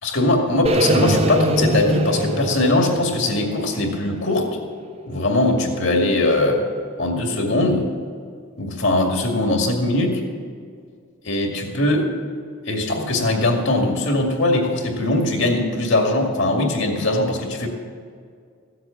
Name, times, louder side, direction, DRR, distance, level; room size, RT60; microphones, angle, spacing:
voice 1, 0.0-4.5 5.1-6.6 7.0-7.9 8.6-10.2 11.2-12.1 12.7-17.7, left 2 dB, 60° left, 1 dB, 2.2 m, -20 dB
sound 1, 0.7-4.7, right 1 dB, 30° right, 0.6 m, -23 dB
16.0 x 8.0 x 7.1 m, 2.1 s
head